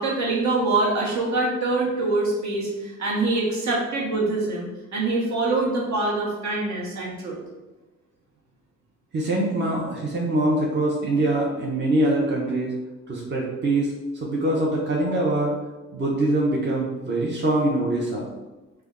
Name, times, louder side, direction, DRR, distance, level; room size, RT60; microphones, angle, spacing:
voice 1, 0.0-7.4, right 2 dB, 65° right, -4 dB, 1.1 m, -24 dB
voice 2, 9.1-12.7 13.1-15.5 15.9-18.3, right 1 dB, 35° right, -3 dB, 0.7 m, -23 dB
3.3 x 2.2 x 3.6 m, 1.1 s
cardioid pair, 90°, 30 cm